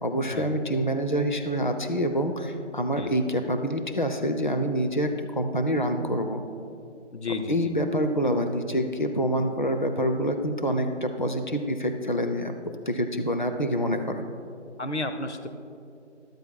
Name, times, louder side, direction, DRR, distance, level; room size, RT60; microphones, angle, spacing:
voice 1, 0.0-6.4 7.5-12.6 12.9-14.3, equal, 45° left, 6 dB, 0.5 m, -26 dB
voice 2, 7.1-7.7 14.8-15.5, left 2 dB, 65° left, 8 dB, 0.8 m, -32 dB
13.0 x 12.0 x 2.3 m, 2.6 s
figure-of-eight pair, 175°, 36 cm